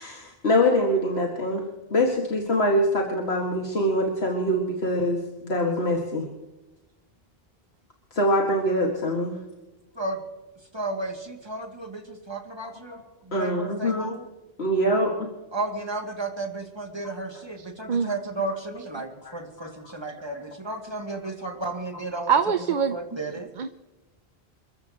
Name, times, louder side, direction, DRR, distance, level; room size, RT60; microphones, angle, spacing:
voice 1, 0.0-6.3 8.1-9.4 12.9-13.0 13.3-14.1 14.6-15.1 17.3-17.4 19.2-19.3 19.6-19.7, equal, 90° left, 0 dB, 2.4 m, -24 dB
voice 2, 10.7-13.0 13.3-14.2 15.5-22.3 22.9-23.5, right 2 dB, 25° right, 2 dB, 2.5 m, -33 dB
voice 3, 17.6-18.2 18.9-19.0 22.3-23.0 23.3-23.7, right 7 dB, 55° right, 9 dB, 0.8 m, -25 dB
29.5 x 14.5 x 3.0 m, 1.1 s
omnidirectional pair, 1.0 m